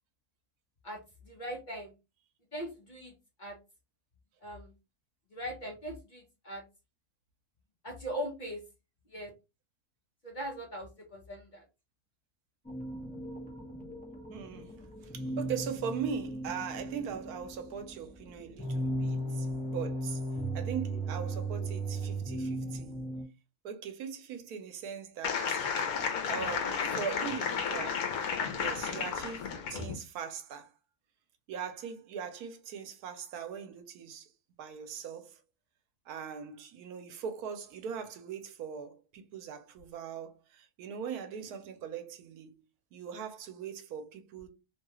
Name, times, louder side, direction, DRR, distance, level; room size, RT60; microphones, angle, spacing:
voice 1, 0.8-1.9 2.5-3.6 4.4-4.7 5.3-6.6 7.8-8.6 9.1-9.3 10.2-11.6, equal, 40° left, 0.8 m, -40 dB
sound 1, 12.6-23.2, right 1 dB, 10° left, 0.4 m, -36 dB
voice 2, 14.3-14.7 15.1-19.5 19.7-20.2 20.5-22.9 23.6-25.6 26.3-28.1 28.5-30.7 31.5-34.3 34.6-35.4 36.1-42.5 42.9-44.5, right 7 dB, 90° right, 1.1 m, -40 dB
sound 2, 25.2-29.9, left 6 dB, 75° left, 1.1 m, -33 dB
3.0 x 2.3 x 3.0 m
omnidirectional pair, 1.6 m